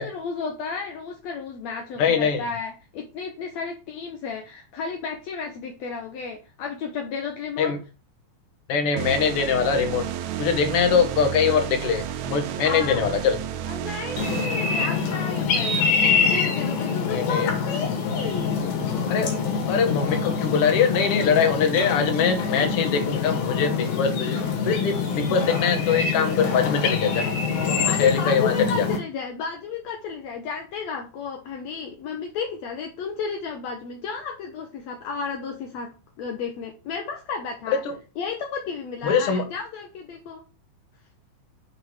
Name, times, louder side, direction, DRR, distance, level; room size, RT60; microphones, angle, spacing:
voice 1, 0.0-7.7 12.6-13.1 13.7-15.9 16.2-18.8 27.8-37.8 38.2-40.4, left 5 dB, 70° left, 1.7 m, -33 dB
voice 2, 2.0-2.5 7.6-7.8 8.7-10.1 10.4-13.4 17.1-17.5 19.1-19.3 19.7-24.4 24.7-27.3 27.8-28.9 37.7-37.9 39.0-39.5, left 6 dB, 55° left, 1.8 m, -23 dB
sound 1, 9.0-15.4, right 10 dB, 90° right, 1.6 m, -32 dB
sound 2, 14.2-29.0, left 5 dB, 85° left, 3.9 m, -25 dB
8.3 x 3.7 x 6.3 m
omnidirectional pair, 4.2 m